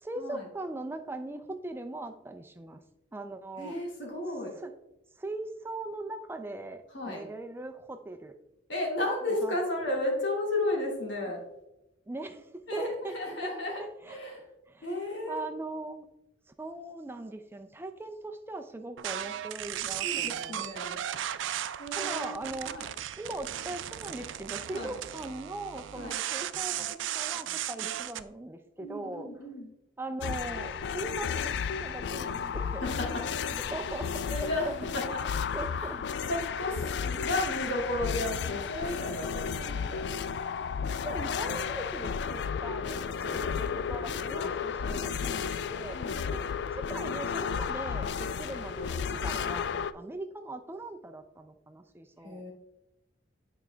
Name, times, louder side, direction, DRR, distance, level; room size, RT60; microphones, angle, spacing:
voice 1, 0.0-2.8 3.1-3.8 4.6-4.7 5.2-8.4 9.4-9.6 12.1-13.1 13.4-13.5 13.8-14.4 14.7-14.9 15.3-16.1 16.6-20.7 21.9-22.9 23.2-29.3 30.0-32.8 33.7-34.2 34.7-34.8 35.5-36.0 41.0-45.4 45.7-46.0 46.3-46.5 46.7-52.5, right 2 dB, 10° right, 7 dB, 0.4 m, -40 dB
voice 2, 3.6-4.5 6.9-7.3 8.7-11.4 12.7-13.8 14.1-14.5 14.8-15.5 20.0-21.0 21.8-22.9 24.7-24.9 25.9-26.2 27.8-27.9 28.8-29.7 32.8-33.2 34.3-35.0 35.5-35.9 36.3-40.1 43.2-44.5 44.8-45.5 45.9-46.2 52.2-52.5, left 1 dB, 75° left, -2 dB, 2.5 m, -34 dB
sound 1, 19.0-28.2, right 11 dB, 90° right, 0.4 m, -35 dB
sound 2, 30.2-49.9, left 6 dB, 60° left, 0.3 m, -33 dB
sound 3, 33.5-39.9, right 1 dB, 30° left, 0.9 m, -54 dB
9.6 x 4.9 x 3.4 m, 0.89 s
head